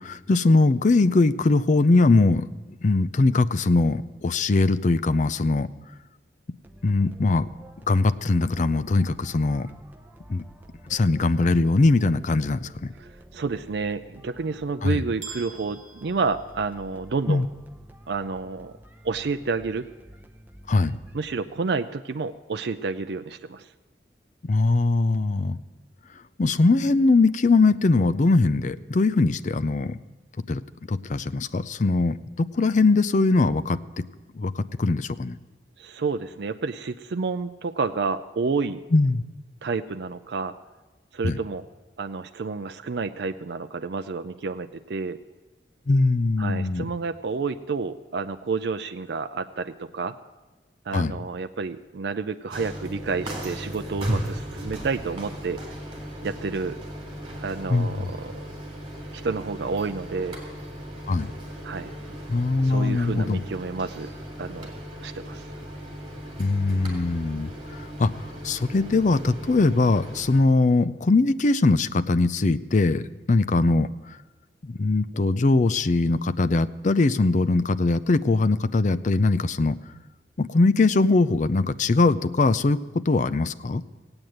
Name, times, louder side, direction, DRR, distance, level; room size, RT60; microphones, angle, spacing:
voice 1, 0.0-2.5 2.8-5.7 6.8-7.5 7.9-9.7 10.3-10.4 10.9-12.9 14.8-15.0 17.3-17.5 20.7-21.0 24.4-25.6 26.4-30.0 30.5-30.6 30.9-34.0 34.3-35.4 38.9-39.2 41.2-41.4 45.9-46.8 50.9-51.2 57.7-57.9 61.1-61.3 62.3-63.4 66.4-68.1 68.4-74.2 74.6-79.8 80.4-82.8 83.1-83.8, left 3 dB, 45° left, 12 dB, 0.5 m, -21 dB
sound 1, 6.6-21.6, right 1 dB, 10° right, 0.8 m, -50 dB
voice 2, 13.0-17.5 18.1-18.7 19.0-19.9 21.1-23.7 35.8-38.8 39.6-40.6 41.1-41.6 42.0-45.2 46.4-50.2 50.9-55.6 56.2-56.8 57.4-58.5 59.1-60.4 61.6-61.9 62.4-64.1 64.4-64.7 65.0-65.5, right 4 dB, 65° right, 8 dB, 0.4 m, -30 dB
sound 2, 15.2-17.2, right 5 dB, 45° right, 1.8 m, -44 dB
sound 3, 52.5-70.4, equal, 25° right, 3.3 m, -36 dB
16.5 x 8.9 x 7.9 m, 1.2 s
head